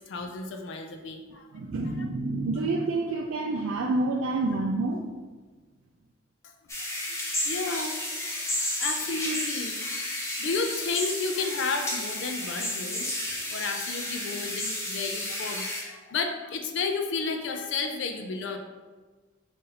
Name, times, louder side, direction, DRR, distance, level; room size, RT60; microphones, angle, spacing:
voice 1, 0.0-2.1 6.4-6.5 6.9-10.0 10.4-18.6, left 4 dB, 60° left, 5 dB, 0.4 m, -33 dB
voice 2, 1.5-5.0, right 2 dB, 85° right, 0 dB, 0.4 m, -28 dB
sound 1, 6.7-15.8, left 1 dB, 15° left, 0.6 m, -32 dB
3.9 x 2.6 x 4.1 m, 1.3 s
head